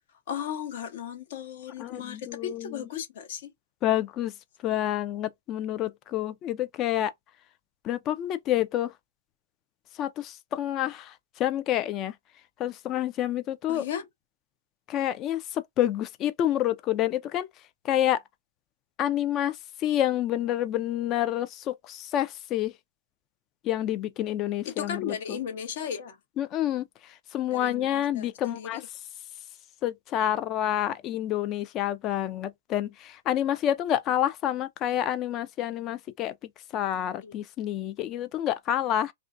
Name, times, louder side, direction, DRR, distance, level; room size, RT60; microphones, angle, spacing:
voice 1, 0.3-3.5 13.7-14.0 24.6-26.2 27.5-28.9 37.2-37.3, left 8 dB, 60° left, 0.9 m, -35 dB
voice 2, 1.8-2.9 3.8-4.3 4.6-7.1 7.8-8.9 9.9-12.1 12.6-13.9 14.9-17.5 17.8-18.2 19.0-22.7 23.6-25.4 26.4-28.8 29.8-36.3 36.7-39.1, left 12 dB, 30° left, 0.4 m, -28 dB
2.4 x 2.2 x 2.5 m
hypercardioid pair, 145°, 0 cm